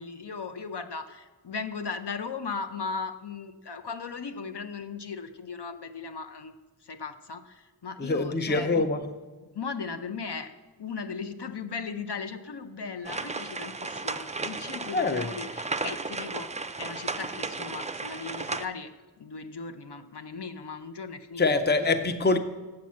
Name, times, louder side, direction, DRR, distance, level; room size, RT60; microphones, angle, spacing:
voice 1, 0.0-6.5 6.8-8.9 9.5-10.5 10.8-16.5 16.8-18.9 19.2-21.6, left 5 dB, 70° left, 8 dB, 0.6 m, -37 dB
voice 2, 8.0-9.0 14.9-15.3 21.4-22.4, left 3 dB, 25° left, 9 dB, 0.6 m, -24 dB
sound 1, 13.0-18.6, right 3 dB, 20° right, 0.3 m, -34 dB
7.5 x 5.7 x 7.4 m, 1.3 s
wide cardioid pair, 55°, 43 cm